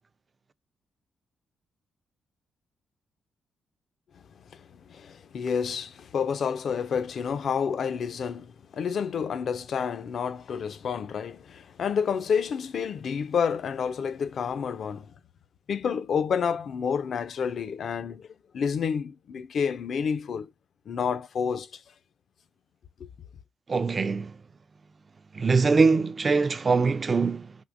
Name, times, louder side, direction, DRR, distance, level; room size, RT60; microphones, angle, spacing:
voice 1, 4.6-15.1 15.7-18.3 18.5-20.5 20.9-21.7 23.0-23.1, left 6 dB, 65° left, 0.4 m, -29 dB
voice 2, 23.7-24.4 25.3-27.6, right 4 dB, 40° right, 0.4 m, -23 dB
3.6 x 2.8 x 2.5 m
supercardioid pair, 65°, 0 cm